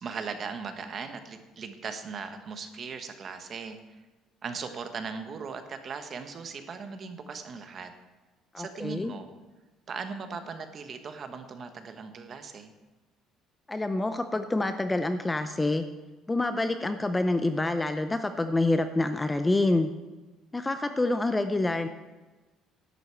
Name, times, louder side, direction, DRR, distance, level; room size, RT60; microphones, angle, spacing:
voice 1, 0.0-4.0 4.4-7.9 8.6-9.3 9.9-12.7, right 5 dB, 30° right, 7 dB, 1.2 m, -38 dB
voice 2, 8.5-9.1 13.7-15.8 16.3-19.9 20.5-21.9, left 2 dB, 10° left, 9 dB, 0.5 m, -27 dB
11.5 x 8.0 x 8.4 m, 1.2 s
cardioid pair, 175°, 0 cm